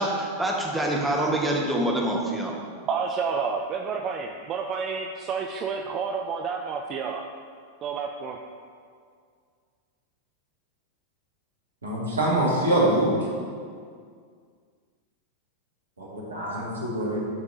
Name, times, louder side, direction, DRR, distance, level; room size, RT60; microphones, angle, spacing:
voice 1, 0.0-2.5, right 1 dB, 5° right, -2 dB, 1.3 m, -25 dB
voice 2, 2.9-7.3 7.8-8.4, right 5 dB, 30° right, 3 dB, 0.4 m, -30 dB
voice 3, 11.8-13.2 16.0-17.3, right 1 dB, 75° right, -4 dB, 1.9 m, -24 dB
12.5 x 5.2 x 2.7 m, 2.1 s
figure-of-eight pair, 90°, 0 cm